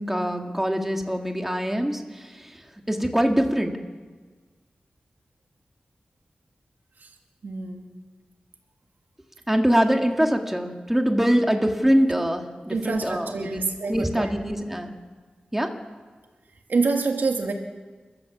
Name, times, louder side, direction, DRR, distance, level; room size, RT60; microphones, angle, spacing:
voice 1, 0.0-3.7 9.5-13.6 13.9-14.9 15.5-15.7, equal, 10° right, 3 dB, 2.1 m, -23 dB
voice 2, 7.4-7.9 12.7-14.3 16.7-17.5, right 4 dB, 75° right, 3 dB, 2.4 m, -26 dB
28.5 x 13.5 x 7.4 m, 1.4 s
wide cardioid pair, 80°, 3 cm